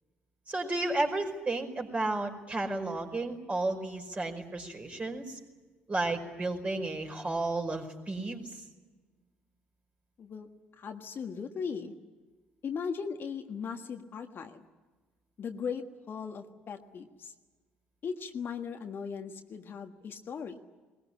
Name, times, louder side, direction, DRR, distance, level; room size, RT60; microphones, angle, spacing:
voice 1, 0.5-5.4 5.9-8.6, right 2 dB, 25° right, 2 dB, 5.0 m, -32 dB
voice 2, 10.2-11.9 12.6-14.6 15.4-17.3 18.0-20.6, left 6 dB, 40° left, 5 dB, 1.6 m, -38 dB
21.5 x 20.5 x 9.9 m, 1.3 s
figure-of-eight pair, 50°, 5 cm